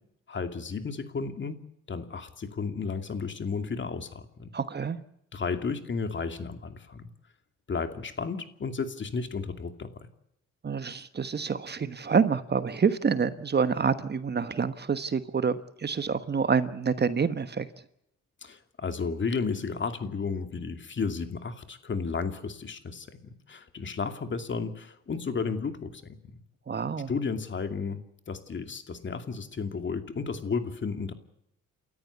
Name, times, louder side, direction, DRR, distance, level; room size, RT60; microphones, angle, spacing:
voice 1, 0.3-1.6 1.9-4.5 5.3-7.1 7.7-10.1 18.4-26.1 27.1-31.1, left 5 dB, 40° left, 8 dB, 2.5 m, -33 dB
voice 2, 4.5-5.0 10.6-17.7 26.7-27.1, right 5 dB, 35° right, 12 dB, 1.3 m, -27 dB
29.5 x 14.0 x 8.3 m, 0.77 s
cardioid pair, 90°, 30 cm